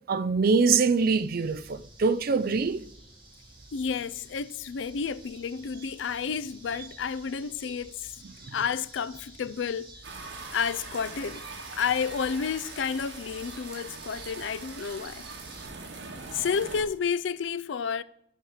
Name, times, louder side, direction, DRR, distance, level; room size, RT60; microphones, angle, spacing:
voice 1, 0.1-2.9 8.4-8.6, right 4 dB, 55° right, 0.5 m, -24 dB
sound 1, 0.9-15.6, right 2 dB, 30° right, 2.8 m, -51 dB
voice 2, 3.7-8.2 8.5-9.9 10.5-11.4 11.7-15.3 16.3-18.0, left 6 dB, 90° left, 0.5 m, -31 dB
sound 2, 10.0-16.8, right 4 dB, 75° right, 1.8 m, -42 dB
12.0 x 4.9 x 7.3 m
head